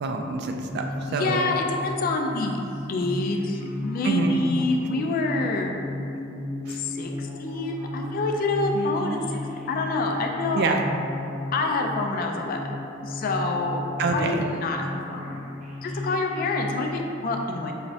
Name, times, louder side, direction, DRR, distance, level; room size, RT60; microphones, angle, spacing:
voice 1, 0.0-1.5 4.0-4.4 6.7-6.8 8.7-9.2 10.5-10.8 14.0-14.4, right 3 dB, 55° right, 3 dB, 0.3 m, -27 dB
sound 1, 0.7-17.0, left 1 dB, 35° right, 0.7 m, -35 dB
voice 2, 1.1-2.6 2.9-5.7 6.7-9.4 9.7-10.7 11.5-15.4 15.8-17.7, left 2 dB, 45° left, 2 dB, 0.3 m, -27 dB
5.5 x 2.0 x 2.6 m, 2.7 s
head